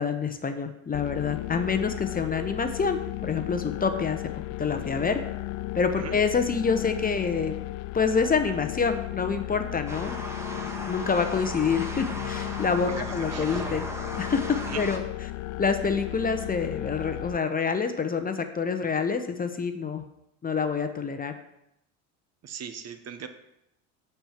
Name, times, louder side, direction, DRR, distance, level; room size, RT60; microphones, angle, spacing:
voice 1, 0.0-4.3 4.6-5.2 5.7-7.5 7.9-10.2 10.5-13.9 14.2-15.0 15.6-20.0 20.4-21.3, left 5 dB, 20° left, 8 dB, 0.9 m, -27 dB
sound 1, 0.9-17.4, left 19 dB, 55° left, 0.4 m, -35 dB
sound 2, 9.9-15.0, right 1 dB, 5° right, 1.5 m, -37 dB
voice 2, 12.9-13.6 14.6-14.8 22.4-23.3, right 7 dB, 40° right, 9 dB, 1.0 m, -39 dB
8.7 x 4.7 x 7.4 m, 0.83 s
hypercardioid pair, 80°, 38 cm